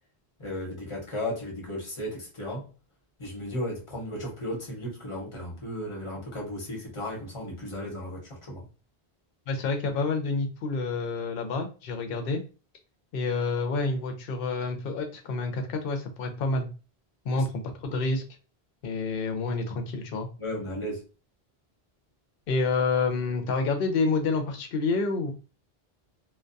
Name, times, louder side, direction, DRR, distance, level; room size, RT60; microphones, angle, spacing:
voice 1, 0.4-2.7 3.2-8.6 17.3-17.5 20.4-21.0, left 1 dB, 30° left, 0.9 m, -35 dB
voice 2, 9.5-12.4 13.1-16.7 17.2-18.2 18.8-20.3 22.5-25.3, left 3 dB, 70° left, 0.7 m, -28 dB
2.2 x 2.2 x 2.5 m
omnidirectional pair, 1.0 m